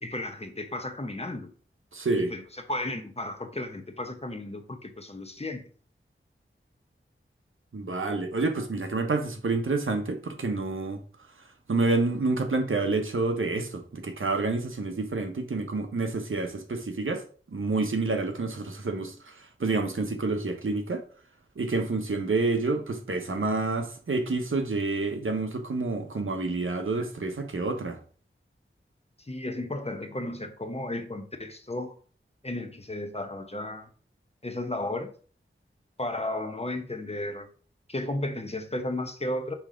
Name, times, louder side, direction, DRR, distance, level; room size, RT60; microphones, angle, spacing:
voice 1, 0.0-1.5 2.2-2.4 2.7-5.6 29.2-31.9 32.4-33.9 34.4-35.1 36.0-37.5 37.9-39.5, left 1 dB, 30° left, 1.0 m, -34 dB
voice 2, 1.9-2.3 7.7-11.0 11.7-17.2 17.5-21.0 21.6-28.0, right 3 dB, 70° right, 1.0 m, -28 dB
5.8 x 3.4 x 5.1 m
wide cardioid pair, 60°, 21 cm